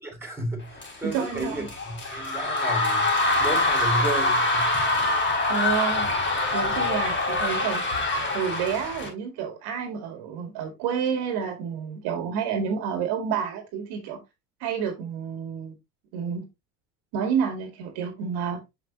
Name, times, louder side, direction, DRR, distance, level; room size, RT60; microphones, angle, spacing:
voice 1, 0.0-4.7, right 2 dB, 5° right, 3.6 m, -33 dB
sound 1, 0.8-9.1, left 2 dB, 25° left, 3.6 m, -25 dB
voice 2, 1.0-1.7 5.5-6.1 6.5-7.8 8.3-14.2 14.6-15.7 16.1-16.5 17.1-18.6, right 7 dB, 60° right, 2.1 m, -29 dB
6.6 x 6.3 x 2.8 m
supercardioid pair, 100°, 44 cm